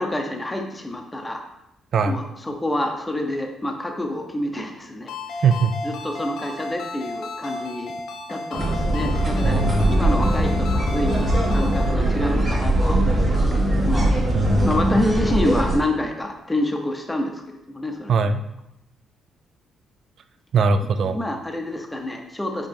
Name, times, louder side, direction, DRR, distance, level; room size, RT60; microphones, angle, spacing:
voice 1, 0.0-1.4 2.0-5.4 5.8-7.9 8.3-14.1 14.6-17.4 17.7-18.1 21.0-22.7, left 1 dB, 10° left, 3 dB, 0.6 m, -27 dB
Ringtone, 5.1-11.9, left 2 dB, 70° left, 0.5 m, -34 dB
sound 1, 8.5-15.8, right 1 dB, 35° right, 1.2 m, -21 dB
voice 2, 9.4-10.0 14.3-15.0 18.1-18.4 20.5-21.2, right 4 dB, 60° right, 10 dB, 0.3 m, -21 dB
5.2 x 2.9 x 3.4 m, 0.85 s
cardioid pair, 90°, 0 cm